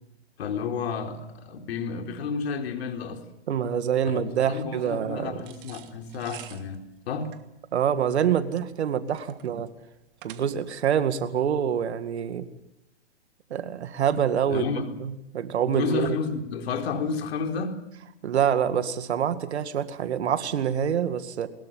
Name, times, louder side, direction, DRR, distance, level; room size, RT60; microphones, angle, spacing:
voice 1, 0.4-3.2 4.0-7.3 14.5-14.9 15.7-17.8, left 5 dB, 65° left, 4.4 m, -31 dB
voice 2, 3.5-5.4 7.7-9.7 10.2-12.5 13.5-14.6 15.0-16.2 18.2-21.5, right 8 dB, 70° right, 2.2 m, -26 dB
sound 1, 5.4-10.8, right 13 dB, 50° right, 2.6 m, -48 dB
23.0 x 21.5 x 7.5 m
hypercardioid pair, 120°, 34 cm